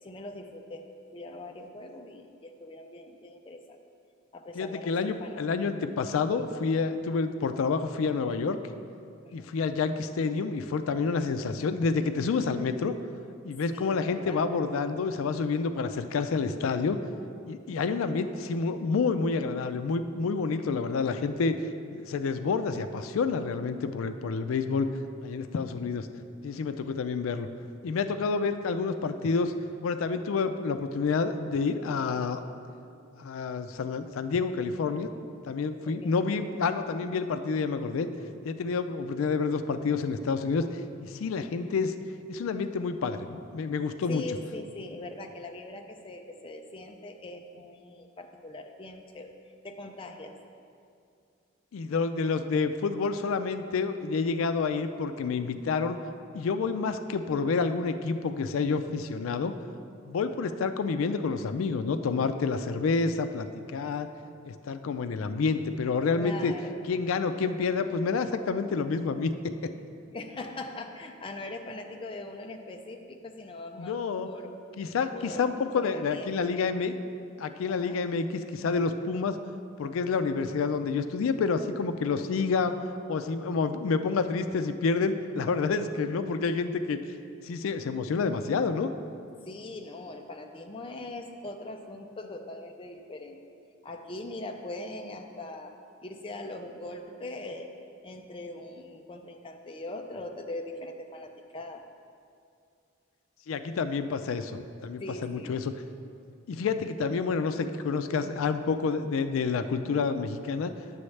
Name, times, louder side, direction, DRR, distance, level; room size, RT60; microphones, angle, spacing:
voice 1, 0.0-3.8 4.3-5.4 9.2-9.4 13.7-14.5 35.9-36.1 44.1-49.3 49.6-50.4 66.1-66.9 70.1-74.5 75.1-76.6 77.7-78.0 89.4-93.4 93.8-97.7 98.0-101.9 105.0-105.6, left 2 dB, 25° left, 3 dB, 0.4 m, -41 dB
voice 2, 4.6-8.6 9.3-12.9 13.4-17.0 17.5-21.5 21.9-24.9 25.2-26.1 26.4-27.5 27.8-29.5 29.8-32.4 33.2-35.1 35.4-38.1 38.4-40.6 41.0-41.9 42.3-44.2 51.7-56.0 56.3-59.5 60.1-64.1 64.5-66.5 66.9-69.7 73.8-74.3 74.8-76.9 77.4-79.4 79.8-82.7 83.1-87.0 87.4-88.9 103.5-105.6 106.5-110.7, left 4 dB, 90° left, 9 dB, 0.4 m, -28 dB
9.8 x 7.0 x 3.2 m, 2.4 s
head